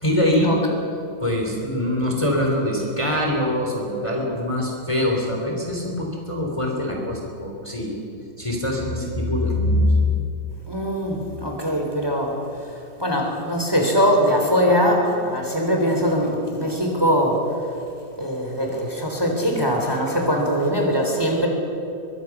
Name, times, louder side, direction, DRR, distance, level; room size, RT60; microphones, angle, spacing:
voice 1, 0.0-0.5 1.2-8.0 8.4-10.2, left 1 dB, 15° left, 0 dB, 3.3 m, -23 dB
voice 2, 10.7-12.3 13.0-17.4 18.2-21.5, equal, 10° right, 1 dB, 3.5 m, -21 dB
23.5 x 23.0 x 6.1 m, 2.8 s
omnidirectional pair, 2.0 m